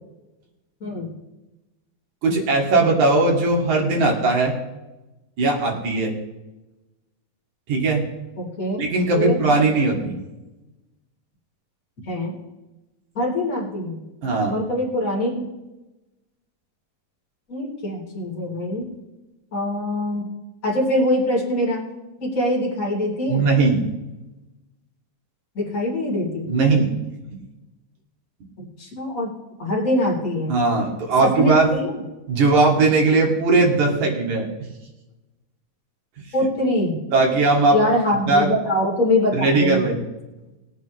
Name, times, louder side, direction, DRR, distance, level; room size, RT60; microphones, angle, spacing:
voice 1, 2.2-4.5 5.4-6.1 7.7-8.0 8.8-10.1 14.2-14.6 23.3-23.8 26.5-27.0 30.5-31.7 32.3-34.5 37.1-37.8 38.3-38.5 39.3-40.0, right 3 dB, 60° right, -1 dB, 3.8 m, -19 dB
voice 2, 8.4-8.8 9.1-9.4 12.1-12.3 13.2-14.0 14.5-15.5 17.5-18.8 19.5-20.3 20.6-21.8 22.2-23.4 25.5-26.5 28.8-29.3 29.6-30.5 31.2-31.9 36.3-37.0 37.7-39.8, left 1 dB, 25° left, -3 dB, 3.9 m, -23 dB
21.5 x 9.4 x 3.2 m, 1.0 s
omnidirectional pair, 3.9 m